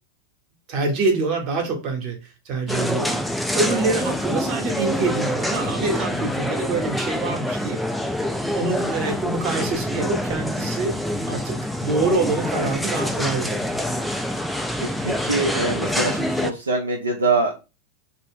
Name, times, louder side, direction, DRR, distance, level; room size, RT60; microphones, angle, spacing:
voice 1, 0.7-2.2 2.4-3.3 3.5-7.8 8.4-11.0 11.2-13.9, right 3 dB, 40° right, 3 dB, 0.9 m, -25 dB
sound 1, 2.7-16.5, equal, ahead, 0.3 m, -26 dB
voice 2, 14.8-17.5, right 3 dB, 75° right, 1 dB, 0.4 m, -24 dB
2.3 x 2.0 x 3.3 m, 0.29 s
figure-of-eight pair, 90°, 0 cm